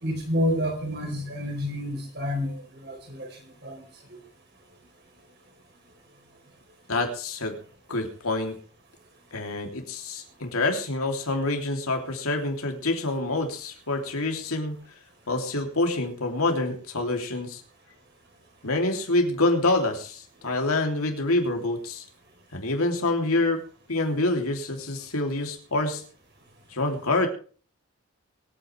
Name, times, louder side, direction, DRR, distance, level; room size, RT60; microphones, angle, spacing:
voice 1, 0.0-3.3 3.6-3.8, equal, 50° right, 3 dB, 4.1 m, -29 dB
voice 2, 6.9-7.5 7.9-8.5 9.3-14.8 15.3-17.6 18.6-22.0 22.5-23.6 23.9-26.0 26.7-27.3, left 2 dB, 85° left, 3 dB, 3.2 m, -26 dB
23.5 x 9.3 x 3.4 m, 0.40 s
head